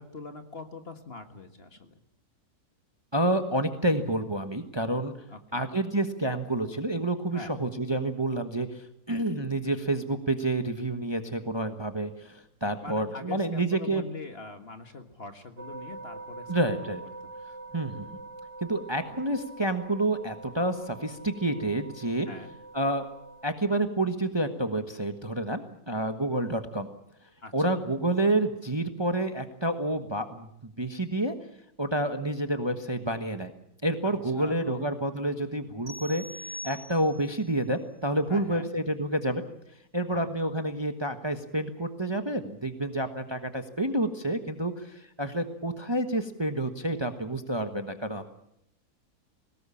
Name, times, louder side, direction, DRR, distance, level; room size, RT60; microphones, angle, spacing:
voice 1, 0.0-1.9 5.3-5.7 7.3-7.5 12.8-16.9 22.3-22.5 27.4-27.5 34.0-34.8 38.3-38.7 40.1-40.3, left 4 dB, 40° left, 7 dB, 1.9 m, -43 dB
voice 2, 3.1-5.1 5.5-14.0 16.5-17.0 17.7-18.1 18.6-22.3 22.7-23.0 23.4-26.9 27.5-31.4 31.8-33.5 33.8-39.4 39.9-48.3, right 1 dB, 20° right, 7 dB, 1.3 m, -29 dB
sound 1, 15.6-23.4, right 3 dB, 85° right, 3.0 m, -44 dB
sound 2, 35.9-37.4, left 1 dB, 55° right, 5.1 m, -42 dB
23.0 x 18.5 x 8.6 m, 0.75 s
omnidirectional pair, 1.7 m